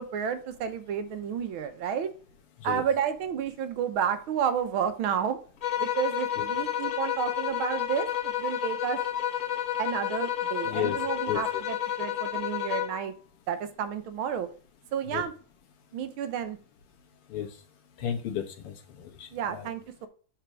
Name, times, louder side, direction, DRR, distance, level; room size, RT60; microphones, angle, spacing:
voice 1, 0.0-2.1 2.6-5.4 5.8-9.0 9.8-13.1 13.5-14.5 14.9-15.3 15.9-16.6 19.3-20.1, right 8 dB, 75° right, 9 dB, 1.6 m, -31 dB
sound 1, 5.6-13.1, left 11 dB, 60° left, 0.8 m, -30 dB
voice 2, 10.6-11.0 11.3-11.6 15.1-15.2 17.3-17.5 18.0-19.7, left 9 dB, 85° left, 4 dB, 2.1 m, -33 dB
6.8 x 4.3 x 6.1 m, 0.39 s
omnidirectional pair, 2.4 m